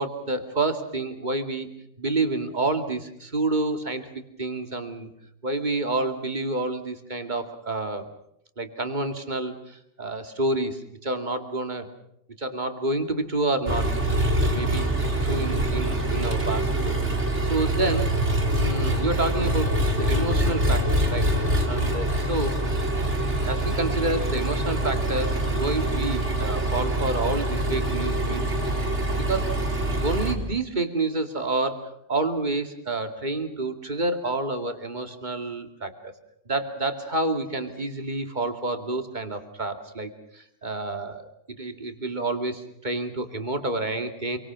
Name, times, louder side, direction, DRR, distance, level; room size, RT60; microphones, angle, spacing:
voice 1, 0.0-1.7 2.0-4.1 4.4-5.1 5.4-8.1 8.6-11.9 12.4-13.9 14.4-14.9 15.2-18.2 18.5-21.3 21.7-22.6 23.4-28.8 29.1-29.6 30.0-36.1 36.5-44.4, right 2 dB, 35° right, 7 dB, 2.6 m, -29 dB
Engine, 13.7-30.4, right 1 dB, 60° right, 4.1 m, -25 dB
28.0 x 24.5 x 6.2 m, 0.77 s
omnidirectional pair, 1.4 m